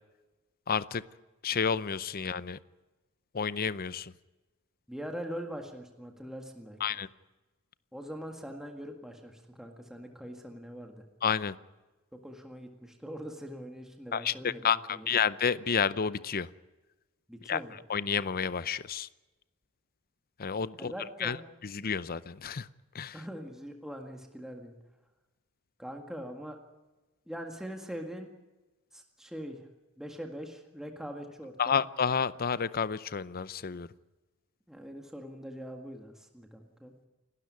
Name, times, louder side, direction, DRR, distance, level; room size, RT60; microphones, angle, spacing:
voice 1, 0.7-1.0 1.4-2.6 3.3-4.1 6.8-7.1 11.2-11.5 14.1-16.5 17.5-17.6 17.9-19.1 20.4-20.9 21.2-21.4 21.7-22.7 22.9-23.2 31.6-33.9, left 6 dB, 45° left, 16 dB, 0.7 m, -30 dB
voice 2, 4.9-7.0 7.9-11.0 12.1-15.3 17.3-17.8 20.8-21.4 23.1-24.8 25.8-26.6 27.3-28.3 28.9-29.7 30.0-31.8 34.7-36.9, equal, ahead, 2 dB, 1.8 m, -42 dB
28.5 x 12.5 x 9.6 m, 1.1 s
head